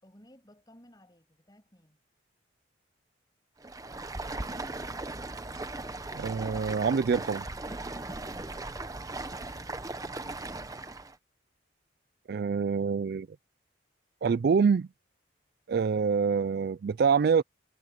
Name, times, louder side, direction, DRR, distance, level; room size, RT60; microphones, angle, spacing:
voice 1, 0.0-2.0 8.4-8.8, left 1 dB, 20° left, 6.6 m, -58 dB
Stream, 3.6-11.2, right 2 dB, 20° right, 0.8 m, -38 dB
voice 2, 6.1-7.4 12.3-13.3 14.2-14.9 15.7-17.4, right 5 dB, 55° right, 0.3 m, -26 dB
head